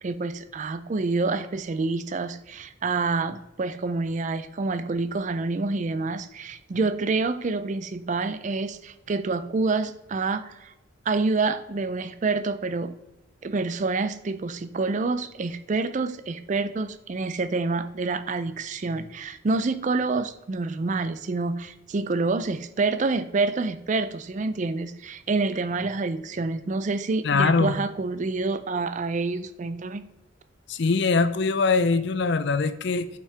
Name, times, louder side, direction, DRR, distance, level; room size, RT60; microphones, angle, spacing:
voice 1, 0.0-10.7 11.1-12.9 13.4-30.1, right 3 dB, 35° right, 12 dB, 0.4 m, -27 dB
voice 2, 27.2-27.8 30.7-33.1, left 4 dB, 60° left, 12 dB, 0.5 m, -22 dB
8.5 x 5.6 x 3.3 m, 0.93 s
head